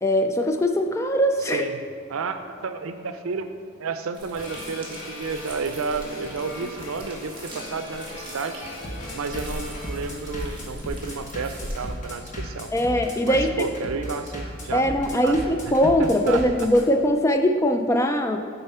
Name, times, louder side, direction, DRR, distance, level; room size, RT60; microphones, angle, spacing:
voice 1, 0.0-1.6 12.7-13.5 14.7-18.4, equal, 15° left, 5 dB, 0.3 m, -21 dB
Bass drum, 0.9-16.8, equal, 35° left, 1.1 m, -37 dB
voice 2, 1.4-1.8 2.1-3.5 3.8-8.6 9.1-12.7 13.2-14.9 15.2-15.4 15.7-15.8 16.0-16.7, right 4 dB, 85° right, 9 dB, 0.5 m, -31 dB
sound 1, 4.1-11.9, right 1 dB, 25° right, 1.5 m, -40 dB
sound 2, 4.4-10.0, left 1 dB, 75° left, 0.9 m, -39 dB
7.0 x 4.4 x 5.5 m, 2.2 s
head